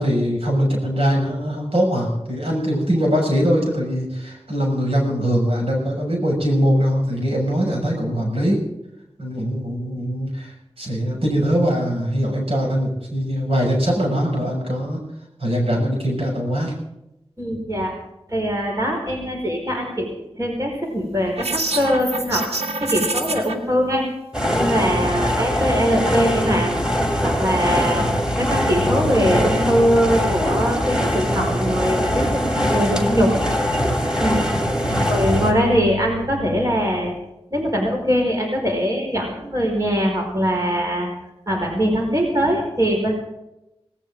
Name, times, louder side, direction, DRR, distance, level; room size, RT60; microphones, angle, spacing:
voice 1, 0.0-8.6 9.2-10.5 10.8-15.0 15.4-16.7 27.9-28.1 34.8-35.1, equal, 70° right, -1 dB, 6.4 m, -22 dB
voice 2, 17.4-17.9 18.3-22.5 22.8-24.1 24.5-26.7 27.2-28.0 28.4-33.4 34.2-34.6 35.1-37.2 37.5-41.1 41.5-43.1, equal, 35° right, 0 dB, 5.0 m, -22 dB
sound 1, 21.4-23.5, right 2 dB, 90° right, 1.8 m, -26 dB
sound 2, 24.3-35.5, equal, 10° right, 3.1 m, -22 dB
18.5 x 18.5 x 3.8 m, 0.89 s
wide cardioid pair, 55°, 10 cm